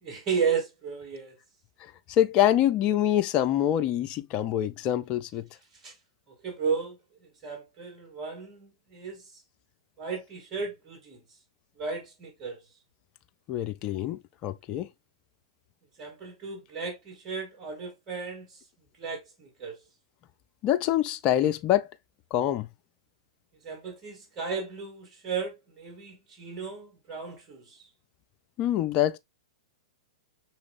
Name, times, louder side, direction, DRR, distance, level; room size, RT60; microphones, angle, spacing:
voice 1, 0.0-1.3 5.8-5.9 6.4-9.3 10.0-11.2 11.8-12.6 16.0-18.6 19.0-19.8 23.6-27.9, right 5 dB, 25° right, 2.0 m, -34 dB
voice 2, 2.1-5.5 13.5-14.9 20.6-21.9 22.3-22.7 28.6-29.2, left 12 dB, 35° left, 0.5 m, -25 dB
6.1 x 3.0 x 2.5 m
figure-of-eight pair, 105°, 3 cm